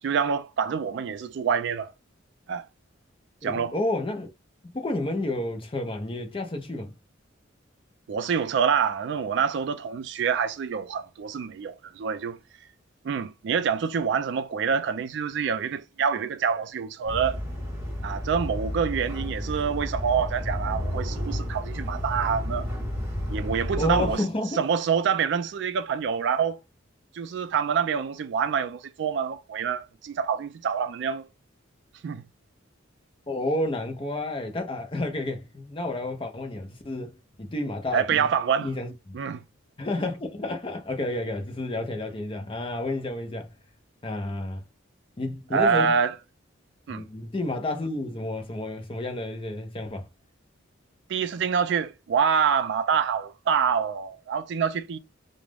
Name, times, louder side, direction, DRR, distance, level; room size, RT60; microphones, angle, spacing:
voice 1, 0.0-1.9 2.5-2.6 3.4-3.7 8.1-12.4 13.0-17.4 18.0-22.7 23.3-24.2 24.5-26.6 27.1-31.3 32.0-32.2 37.9-38.7 39.1-39.4 45.5-46.1 46.9-47.1 51.1-55.0, right 6 dB, 60° right, 0.3 m, -26 dB
voice 2, 3.4-4.3 4.6-6.9 23.8-24.6 33.3-38.3 38.6-39.2 39.8-43.5 44.0-44.6 45.2-45.9 46.9-50.1, left 2 dB, 25° left, 0.5 m, -30 dB
sound 1, 17.1-24.2, equal, 15° right, 0.9 m, -31 dB
2.3 x 2.0 x 3.2 m
head